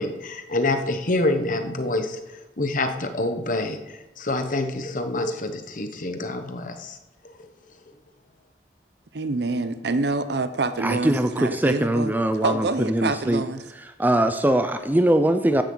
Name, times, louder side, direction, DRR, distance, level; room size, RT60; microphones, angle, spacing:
voice 1, 0.0-2.2 2.6-7.0 7.4-7.5, left 2 dB, 45° left, 7 dB, 1.1 m, -26 dB
voice 2, 9.1-12.1 12.4-13.6, right 3 dB, 65° right, 12 dB, 0.7 m, -26 dB
voice 3, 10.8-13.4 13.8-15.6, right 1 dB, 10° right, 8 dB, 0.5 m, -22 dB
14.5 x 10.5 x 4.0 m, 1.0 s
head